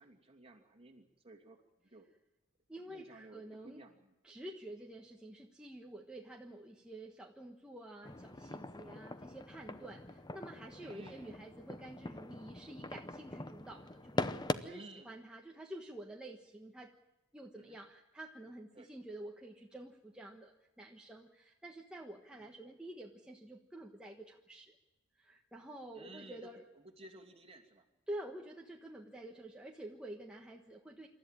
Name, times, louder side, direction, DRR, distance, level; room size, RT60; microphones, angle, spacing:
voice 1, 0.0-1.6 1.9-2.1 2.9-4.1 10.8-11.4 14.7-15.2 17.5-17.8 18.7-18.9 22.3-22.5 25.9-27.9, right 2 dB, 30° right, 2 dB, 2.7 m, -55 dB
voice 2, 2.7-3.8 4.2-16.9 17.3-24.7 25.2-26.7 28.1-31.1, right 1 dB, 5° right, 0 dB, 1.4 m, -49 dB
sound 1, 8.0-14.5, left 2 dB, 20° left, 0.8 m, -42 dB
27.0 x 13.5 x 9.1 m, 1.0 s
head